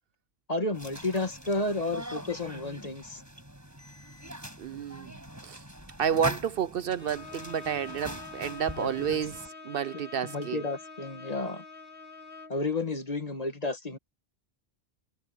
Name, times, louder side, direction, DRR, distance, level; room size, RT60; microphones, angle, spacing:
voice 1, 0.5-3.2 8.7-9.2 10.2-11.6 12.5-14.0, left 2 dB, 35° left, 1.8 m, -32 dB
sound 1, 0.7-9.5, equal, 15° right, 5.9 m, -42 dB
voice 2, 4.6-5.1 5.4-5.6 6.0-10.6, right 8 dB, 65° right, 0.7 m, -30 dB
Bowed string instrument, 7.0-12.7, left 4 dB, 55° left, 2.3 m, -46 dB
omnidirectional pair, 1.1 m